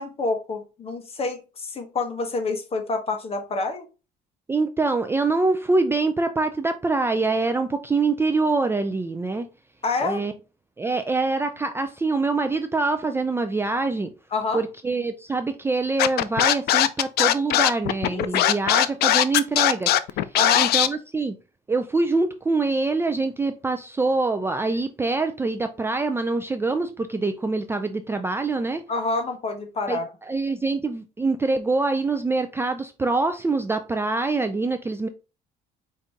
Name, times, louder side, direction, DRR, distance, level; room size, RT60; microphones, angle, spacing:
voice 1, 0.0-3.8 9.8-10.2 14.3-14.6 18.1-18.6 20.3-20.7 28.9-30.1, left 3 dB, 35° left, 1.1 m, -28 dB
voice 2, 4.5-9.5 10.0-10.3 10.8-14.1 14.5-20.0 20.6-21.4 21.7-28.8 29.9-30.0 30.3-35.1, right 3 dB, 15° right, 0.4 m, -24 dB
Scratching (performance technique), 16.0-20.9, left 13 dB, 70° left, 0.4 m, -19 dB
5.1 x 2.7 x 3.5 m
cardioid pair, 110°, 17 cm